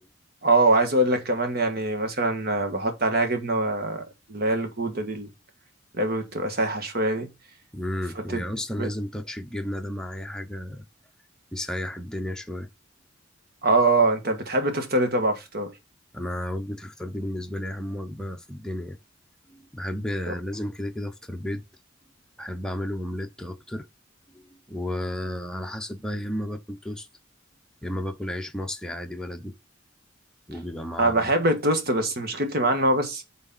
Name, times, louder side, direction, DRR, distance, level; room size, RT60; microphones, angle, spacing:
voice 1, 0.4-4.0 4.3-5.3 5.9-7.3 8.2-8.4 8.8-8.9 13.6-15.7 31.0-33.2, right 2 dB, 50° right, 1.6 m, -23 dB
voice 2, 7.7-10.8 11.5-12.7 16.1-19.0 19.5-21.6 22.4-23.9 24.3-27.1 27.8-29.5 30.5-31.3, left 1 dB, 5° left, 0.8 m, -33 dB
6.4 x 4.1 x 5.5 m
head